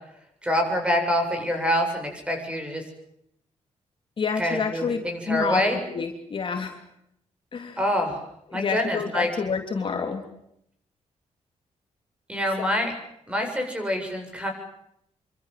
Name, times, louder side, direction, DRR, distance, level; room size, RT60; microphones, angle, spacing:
voice 1, 0.4-2.8 4.4-5.8 7.8-8.2 8.5-9.3 12.3-12.9 13.3-14.5, equal, 10° right, 4 dB, 7.8 m, -26 dB
voice 2, 4.2-5.0 5.3-5.6 5.9-6.8 7.5-7.8 8.5-10.2, left 5 dB, 45° left, 4 dB, 3.3 m, -28 dB
26.5 x 25.5 x 7.7 m, 0.76 s
wide cardioid pair, 145°, 12 cm